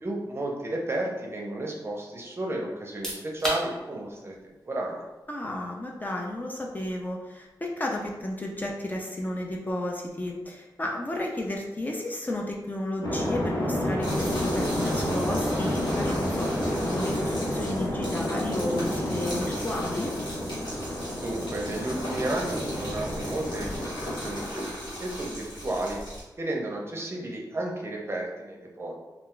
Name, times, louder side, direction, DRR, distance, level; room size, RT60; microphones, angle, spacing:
voice 1, 0.0-4.3 4.7-5.0 21.2-26.0 26.4-28.9, right 1 dB, 35° right, -1 dB, 0.5 m, -32 dB
sound 1, 2.8-15.4, equal, 5° left, 0.8 m, -44 dB
voice 2, 5.3-20.1, left 1 dB, 25° left, 0 dB, 0.3 m, -33 dB
sound 2, 13.0-24.5, equal, 45° left, 0.8 m, -30 dB
sound 3, 14.0-26.2, equal, 80° left, 1.3 m, -38 dB
2.3 x 2.2 x 3.7 m, 1.1 s
wide cardioid pair, 140°, 8 cm